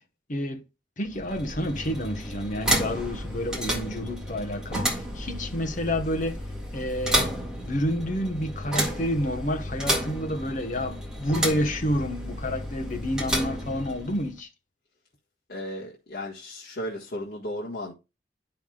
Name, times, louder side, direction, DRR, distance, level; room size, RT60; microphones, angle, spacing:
voice 1, 0.3-0.6 1.0-6.4 6.7-14.5, equal, 45° left, 1.1 m, -29 dB
sound 1, 1.0-14.3, right 1 dB, 5° right, 1.8 m, -31 dB
voice 2, 15.5-17.9, left 1 dB, 65° left, 1.6 m, -35 dB
10.5 x 5.7 x 2.3 m
head